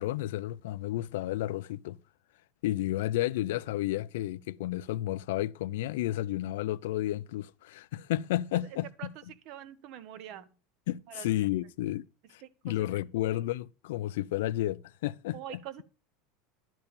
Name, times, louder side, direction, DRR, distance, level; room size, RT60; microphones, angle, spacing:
voice 1, 0.0-2.0 2.6-9.1 10.9-15.6, left 14 dB, 85° left, 0.4 m, -32 dB
voice 2, 9.5-10.5 11.1-11.4 12.4-12.7 15.3-15.8, right 11 dB, 45° right, 0.9 m, -44 dB
11.5 x 4.6 x 7.0 m
supercardioid pair, 170°, 0 cm